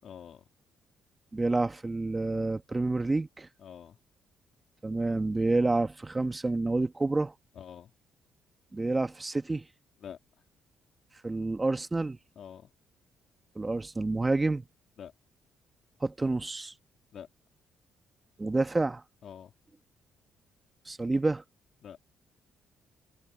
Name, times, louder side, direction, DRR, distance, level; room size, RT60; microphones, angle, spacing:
voice 1, 0.0-0.4 3.6-4.0 7.5-7.9 10.0-10.2 12.4-12.7 15.0-15.1 17.1-17.3 19.2-19.5 21.8-22.0, left 8 dB, 60° left, 3.9 m, -46 dB
voice 2, 1.3-3.5 4.8-7.3 8.7-9.7 11.2-12.2 13.6-14.6 16.0-16.7 18.4-19.0 20.9-21.4, right 2 dB, 25° right, 1.9 m, -28 dB
supercardioid pair, 55°, 0 cm